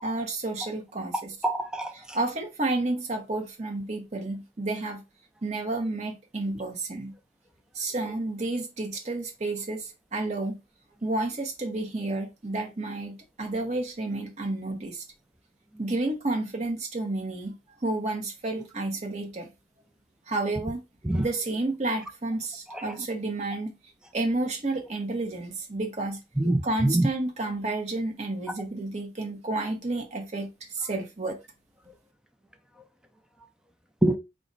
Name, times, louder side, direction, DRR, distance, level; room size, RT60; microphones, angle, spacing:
voice 1, 0.0-1.3 2.1-5.0 5.4-7.1 7.7-10.6 11.0-15.0 15.8-17.5 17.8-19.5 20.3-20.8 21.2-23.7 24.1-26.2 26.6-30.5 30.7-31.4, right 2 dB, 40° right, 0.8 m, -30 dB
voice 2, 1.4-2.2 21.0-21.3 22.7-22.9 26.4-27.1 34.0-34.2, right 1 dB, 5° right, 0.4 m, -25 dB
4.9 x 2.1 x 3.8 m
head